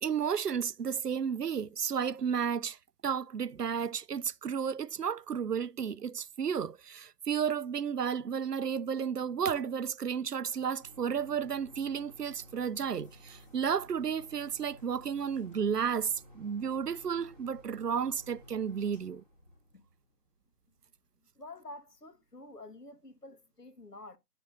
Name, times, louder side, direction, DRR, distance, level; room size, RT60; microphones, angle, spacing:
voice 1, 0.0-2.8 3.0-19.2, right 7 dB, 90° right, 0.6 m, -32 dB
sound 1, 10.8-20.3 20.9-21.0 21.4-21.5, equal, 5° right, 1.3 m, -56 dB
sound 2, 13.0-16.3, left 1 dB, 10° left, 1.7 m, -67 dB
voice 2, 21.3-24.2, left 2 dB, 85° left, 1.6 m, -49 dB
10.5 x 6.8 x 2.5 m
figure-of-eight pair, 155°, 46 cm